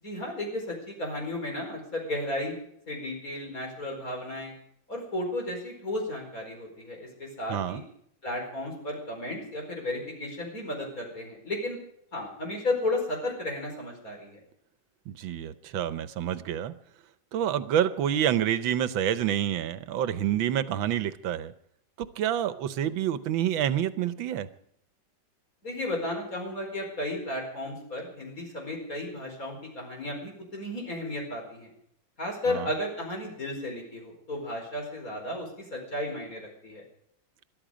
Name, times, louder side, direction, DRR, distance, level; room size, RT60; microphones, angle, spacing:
voice 1, 0.0-2.6 2.9-4.5 4.9-7.8 8.2-11.8 12.1-14.4 25.6-31.7 32.2-36.8, left 1 dB, 45° left, 1 dB, 5.2 m, -34 dB
voice 2, 7.5-7.8 15.1-16.7 17.3-21.5 22.0-24.5 32.5-32.7, right 10 dB, 85° right, 13 dB, 1.6 m, -28 dB
22.0 x 12.5 x 5.0 m, 0.72 s
omnidirectional pair, 2.1 m